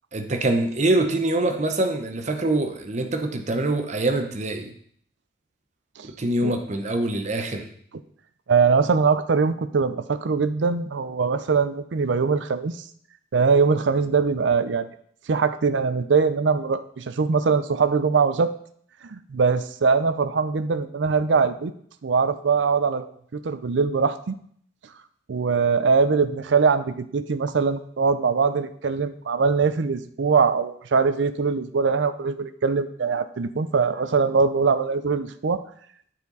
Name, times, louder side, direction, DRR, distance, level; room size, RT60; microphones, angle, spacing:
voice 1, 0.1-4.7 6.0-7.7, right 2 dB, 40° right, 5 dB, 0.8 m, -24 dB
voice 2, 8.5-12.8 13.3-14.9 15.3-18.5 19.1-21.7 22.0-23.1 23.3-24.4 25.3-35.6, right 5 dB, 70° right, 12 dB, 0.5 m, -22 dB
9.6 x 4.3 x 4.0 m, 0.62 s
head